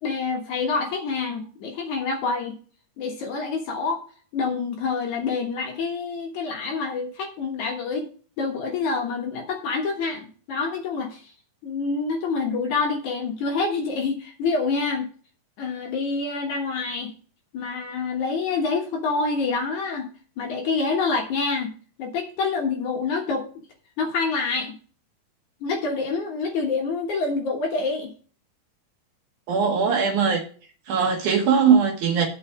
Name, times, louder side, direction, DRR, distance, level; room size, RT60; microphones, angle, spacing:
voice 1, 0.0-2.6 3.0-4.0 4.3-8.1 8.4-11.3 11.6-15.1 15.6-17.1 17.5-20.1 20.4-21.7 22.0-23.5 24.0-24.8 25.6-28.1, left 4 dB, 60° left, 2.4 m, -27 dB
voice 2, 29.5-30.4 30.9-32.3, right 6 dB, 65° right, 2.3 m, -20 dB
9.7 x 6.8 x 4.9 m
omnidirectional pair, 4.4 m